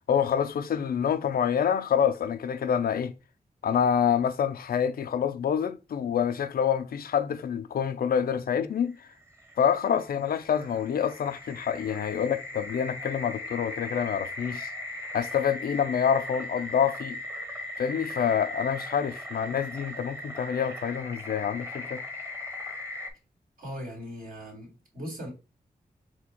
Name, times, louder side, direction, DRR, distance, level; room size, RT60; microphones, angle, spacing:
voice 1, 0.0-3.1 3.6-9.0 9.6-14.7 15.1-17.2 17.8-22.0, left 8 dB, 80° left, 0.4 m, -27 dB
sound 1, 9.1-23.1, left 1 dB, 15° right, 1.0 m, -39 dB
voice 2, 23.6-25.3, equal, 65° right, 2.3 m, -39 dB
4.3 x 2.3 x 4.2 m
cardioid pair, 55°, 15 cm